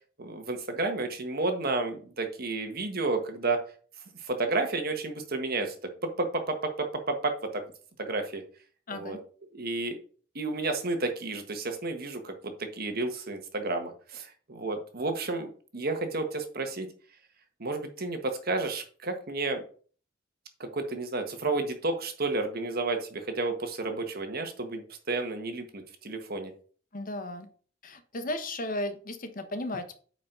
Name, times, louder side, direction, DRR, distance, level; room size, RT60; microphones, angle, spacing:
voice 1, 0.2-3.6 4.2-5.7 6.0-7.6 8.0-8.4 8.9-9.2 9.5-10.0 10.3-16.9 17.6-19.6 20.6-26.5, right 3 dB, 55° right, 6 dB, 1.5 m, -31 dB
voice 2, 8.9-9.2 26.9-27.5 27.8-30.0, left 1 dB, 45° left, 9 dB, 1.1 m, -35 dB
9.0 x 5.0 x 3.9 m, 0.42 s
head